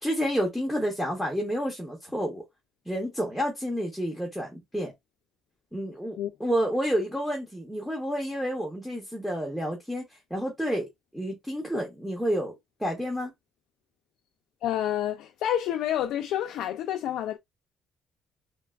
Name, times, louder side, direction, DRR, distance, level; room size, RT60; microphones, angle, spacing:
voice 1, 0.0-2.4 2.9-4.9 5.7-12.5 12.8-13.3, equal, ahead, 0.7 m, -30 dB
voice 2, 14.6-17.4, left 11 dB, 70° left, 0.3 m, -29 dB
3.2 x 2.2 x 2.2 m
cardioid pair, 160°, 0 cm